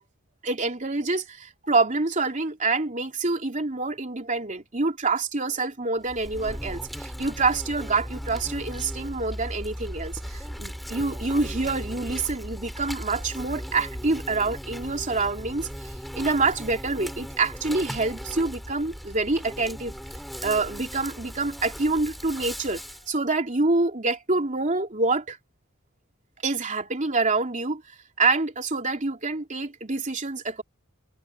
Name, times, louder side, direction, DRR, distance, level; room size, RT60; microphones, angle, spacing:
voice 1, 0.4-20.0 20.4-25.4 26.4-27.8 28.2-30.6, right 3 dB, 35° right, 3.2 m, -26 dB
Insect, 6.0-23.1, equal, ahead, 3.6 m, -37 dB
head